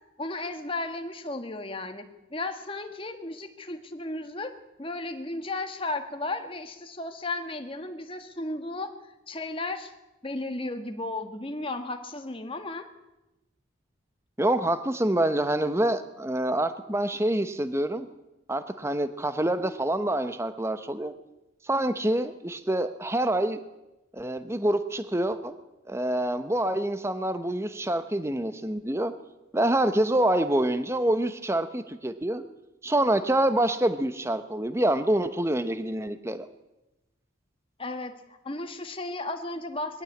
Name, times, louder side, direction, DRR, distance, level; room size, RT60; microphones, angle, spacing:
voice 1, 0.2-4.5 4.8-8.9 9.3-9.9 10.2-12.9 37.8-38.1 38.4-40.0, left 2 dB, 25° left, 6 dB, 1.6 m, -34 dB
voice 2, 14.4-18.1 18.5-21.1 21.6-23.6 24.1-25.5 25.9-29.1 29.5-32.4 32.8-36.5, right 1 dB, 15° right, 10 dB, 0.8 m, -26 dB
21.0 x 15.5 x 8.6 m, 0.97 s
head